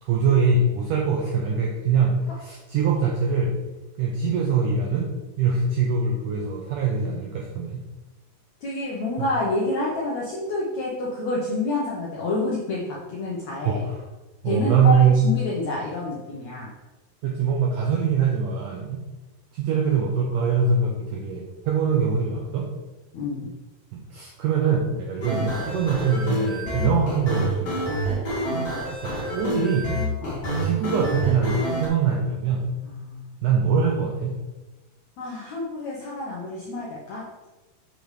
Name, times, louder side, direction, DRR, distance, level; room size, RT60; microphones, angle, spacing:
voice 1, 0.0-3.6 4.0-5.1 5.4-7.8 9.2-9.3 13.7-14.0 14.4-15.3 17.2-19.0 19.5-22.7 23.9-28.0 29.0-30.0 30.6-32.7 33.4-34.4, right 5 dB, 80° right, -1 dB, 1.8 m, -23 dB
voice 2, 8.6-13.8 14.4-16.7 23.1-23.5 28.4-28.9 30.2-30.4 32.8-33.3 35.2-37.2, left 2 dB, 75° left, -4 dB, 1.6 m, -28 dB
sound 1, 25.2-31.9, right 1 dB, 35° left, 1.6 m, -28 dB
6.7 x 6.6 x 3.2 m, 1.1 s
omnidirectional pair, 4.5 m